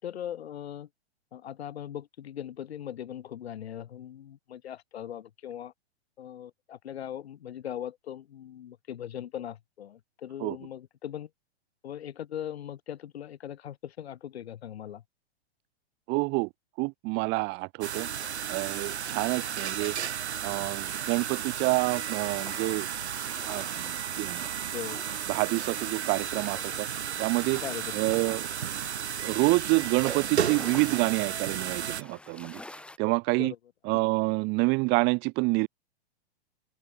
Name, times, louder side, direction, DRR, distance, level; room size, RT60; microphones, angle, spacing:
voice 1, 0.0-0.9 1.3-5.7 6.2-11.3 11.8-15.0 24.7-25.0 27.6-27.8 33.4-33.6, left 10 dB, 70° left, 3.4 m, -39 dB
voice 2, 16.1-16.5 16.8-18.1 18.5-19.9 20.4-22.9 23.5-24.5 25.3-26.9 27.2-27.6 27.9-28.5 29.2-32.6 33.0-33.5 33.8-35.7, right 28 dB, 35° right, 0.9 m, -27 dB
sound 1, 17.8-32.0, right 8 dB, 85° right, 1.8 m, -33 dB
sound 2, 21.3-33.0, left 2 dB, 5° left, 1.3 m, -50 dB
hypercardioid pair, 120°, 32 cm